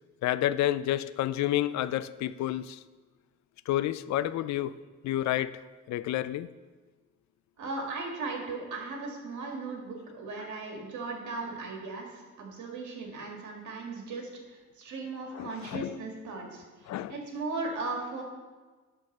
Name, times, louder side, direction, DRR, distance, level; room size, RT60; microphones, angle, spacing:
voice 1, 0.2-2.8 3.7-4.8 5.0-6.5 15.3-16.0 16.9-17.1, left 13 dB, 65° left, 0.4 m, -30 dB
voice 2, 7.6-18.2, right 3 dB, 70° right, 2.0 m, -37 dB
10.5 x 3.9 x 6.6 m
cardioid pair, 90°, 30 cm